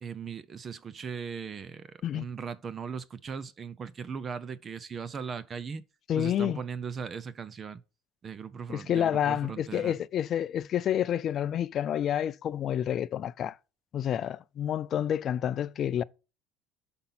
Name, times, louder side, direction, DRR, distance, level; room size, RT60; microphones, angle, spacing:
voice 1, 0.0-5.8 6.2-7.8 8.2-10.0, right 6 dB, 30° right, 0.6 m, -38 dB
voice 2, 6.1-6.6 8.7-13.5 13.9-16.0, left 10 dB, 40° left, 0.4 m, -29 dB
8.4 x 5.4 x 3.9 m
cardioid pair, 135°, 0 cm